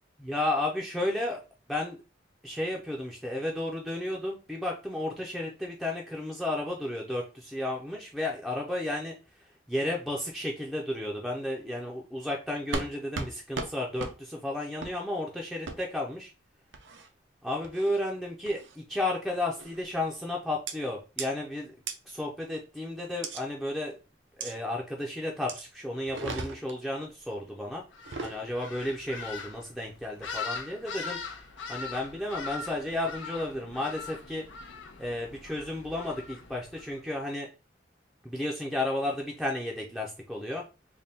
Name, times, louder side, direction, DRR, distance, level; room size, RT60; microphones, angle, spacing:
voice 1, 0.2-1.4 1.7-2.0 2.4-16.3 17.4-21.7 22.1-23.9 24.4-27.8 28.2-31.2 31.7-34.5 35.0-37.5 38.2-40.6, left 1 dB, ahead, -1 dB, 0.5 m, -33 dB
sound 1, 12.7-12.9 13.1-13.3 13.5-13.7 14.0-14.1 14.8-14.9 15.7-15.8 16.7-17.1 17.6-18.0 18.5-18.8 19.6-19.8 20.7-20.8 21.2-21.3 21.9-22.0 23.2-23.4 24.4-24.5 25.5-25.6 26.0-26.8 27.9-28.4, right 4 dB, 80° right, 0.6 m, -36 dB
sound 2, 27.9-37.0, left 5 dB, 90° left, 0.7 m, -41 dB
3.4 x 2.2 x 4.1 m, 0.31 s
head